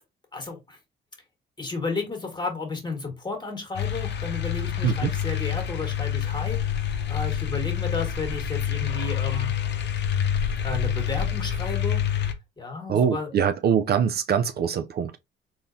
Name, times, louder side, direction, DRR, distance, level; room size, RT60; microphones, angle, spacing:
voice 1, 0.3-0.8 1.6-9.5 10.6-12.0 12.6-13.3, left 3 dB, 20° left, 1.5 m, -33 dB
sound 1, 3.8-12.3, left 9 dB, 60° left, 0.7 m, -27 dB
voice 2, 12.9-15.2, right 8 dB, 55° right, 0.4 m, -23 dB
3.7 x 3.0 x 2.6 m
cardioid pair, 90°, 20 cm